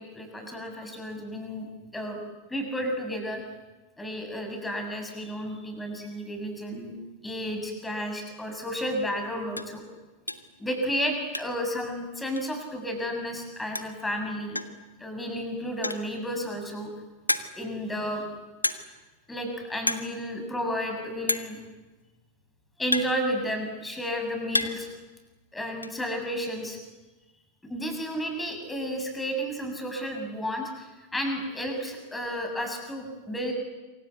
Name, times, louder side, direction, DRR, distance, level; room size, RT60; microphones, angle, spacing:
voice 1, 0.0-2.2 2.5-3.4 4.0-7.0 7.2-9.8 10.6-14.6 15.0-16.9 17.5-18.2 19.3-21.6 22.8-24.9 25.5-26.8 27.7-33.5, equal, 10° left, 4 dB, 7.2 m, -32 dB
sound 1, 8.6-8.7 9.1-9.2 9.5-9.8 10.3-10.6 10.9-11.7 12.0-12.1 12.4-12.5 13.5-13.6 13.8-14.1 14.6-14.9 15.7-16.2 16.7-16.8 17.3-17.8 18.6-19.1 19.3-19.5 19.8-20.1 20.4-20.5 21.3-21.6 22.4-23.7 24.2-24.9 25.2-25.9, left 1 dB, 85° left, 1.5 m, -30 dB
27.5 x 25.5 x 8.4 m, 1.2 s
figure-of-eight pair, 90°, 0 cm